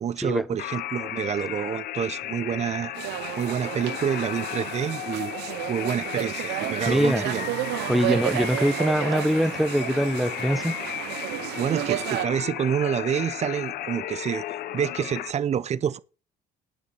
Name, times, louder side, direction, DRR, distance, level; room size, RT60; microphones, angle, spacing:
voice 1, 0.0-2.9 3.4-5.3 5.7-7.5 8.0-8.2 11.6-14.4 14.7-16.0, right 8 dB, 40° right, 0.6 m, -28 dB
sound 1, 0.6-15.3, left 13 dB, 65° left, 0.7 m, -34 dB
sound 2, 2.9-12.3, right 16 dB, 80° right, 0.5 m, -32 dB
voice 2, 6.9-7.2 7.9-10.7, equal, ahead, 0.7 m, -23 dB
10.0 x 5.2 x 7.6 m
cardioid pair, 110°, 17 cm